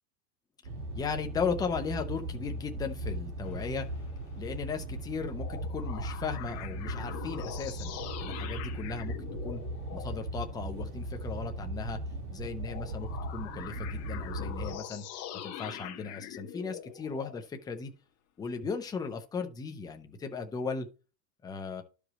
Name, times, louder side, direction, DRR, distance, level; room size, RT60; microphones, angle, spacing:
sound 1, 0.6-14.8, right 1 dB, 60° right, 2.8 m, -38 dB
voice 1, 0.9-3.9 4.4-7.9 8.2-9.1 9.4-9.6 9.9-12.0 12.3-15.0 15.4-17.9 18.4-20.9 21.4-21.8, left 5 dB, 10° left, 0.5 m, -36 dB
sound 2, 3.4-5.1 5.3-10.2 12.6-17.4, left 10 dB, 30° left, 1.3 m, -44 dB
12.0 x 5.0 x 2.9 m
supercardioid pair, 155°, 49 cm